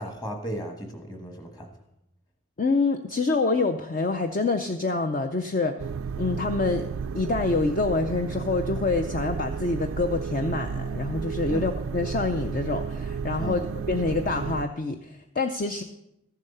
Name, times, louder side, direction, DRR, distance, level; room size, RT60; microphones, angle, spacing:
voice 1, 0.0-1.7 11.5-11.7 13.4-13.7, equal, 20° left, 4 dB, 1.3 m, -35 dB
voice 2, 2.6-5.8 6.2-6.9 7.1-13.6 13.9-15.8, left 3 dB, 40° left, 6 dB, 0.5 m, -26 dB
sound 1, 5.8-14.6, right 6 dB, 75° right, 0.3 m, -32 dB
14.0 x 7.4 x 5.5 m, 0.84 s
head